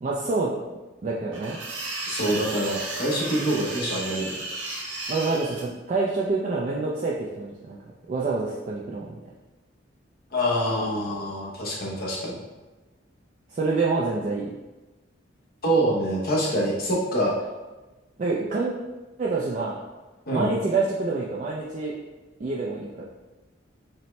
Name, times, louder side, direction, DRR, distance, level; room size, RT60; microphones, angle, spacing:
voice 1, 0.0-0.5 1.0-1.6 5.1-7.8 8.1-9.2 13.5-14.5 18.2-18.7 19.2-19.8 20.3-21.9 22.4-23.0, right 3 dB, 40° right, -4 dB, 0.4 m, -27 dB
sound 1, 1.3-5.6, right 2 dB, 85° right, 0.7 m, -34 dB
voice 2, 2.1-4.3 10.3-12.4 15.6-17.3 20.3-20.5, right 1 dB, 50° left, -4 dB, 0.9 m, -25 dB
5.3 x 2.1 x 3.2 m, 1.2 s
head